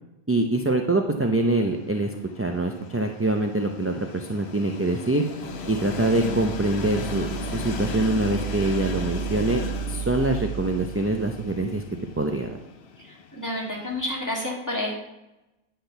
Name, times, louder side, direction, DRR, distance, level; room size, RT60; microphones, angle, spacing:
voice 1, 0.3-5.2 5.7-11.8 12.2-12.6, right 2 dB, 20° right, 3 dB, 0.4 m, -24 dB
Train, 1.2-14.1, left 5 dB, 75° left, 1.1 m, -37 dB
sound 1, 5.4-12.5, right 9 dB, 85° right, 1.3 m, -34 dB
voice 2, 13.0-14.9, left 1 dB, 15° left, -3 dB, 2.4 m, -30 dB
10.0 x 4.4 x 6.7 m, 0.96 s
omnidirectional pair, 1.1 m